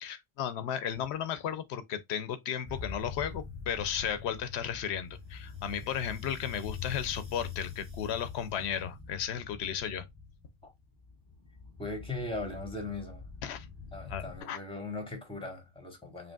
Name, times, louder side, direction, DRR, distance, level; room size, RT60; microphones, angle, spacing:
voice 1, 0.0-10.0 13.4-13.7 14.1-14.6, left 9 dB, 85° left, 0.8 m, -34 dB
sound 1, 2.6-14.4, left 6 dB, 10° right, 2.0 m, -44 dB
voice 2, 11.8-13.2 13.9-16.3, left 2 dB, 5° left, 1.2 m, -39 dB
5.1 x 3.2 x 2.3 m
omnidirectional pair, 1.1 m